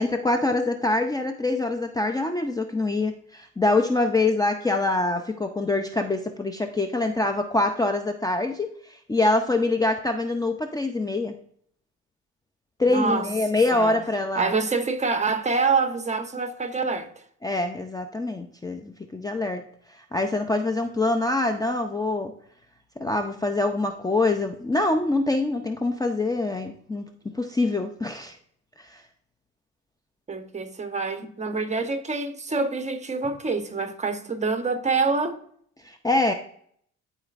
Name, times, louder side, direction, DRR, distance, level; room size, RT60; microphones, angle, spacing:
voice 1, 0.0-11.4 12.8-14.6 17.4-19.6 19.9-22.3 23.0-27.1 27.3-28.4 28.9-29.0 35.8-36.3, left 2 dB, 10° left, 0.5 m, -25 dB
voice 2, 12.8-13.3 13.7-14.0 14.3-17.1 30.3-35.4, right 4 dB, 25° right, 0.9 m, -26 dB
12.0 x 4.1 x 2.5 m
cardioid pair, 90°, 30 cm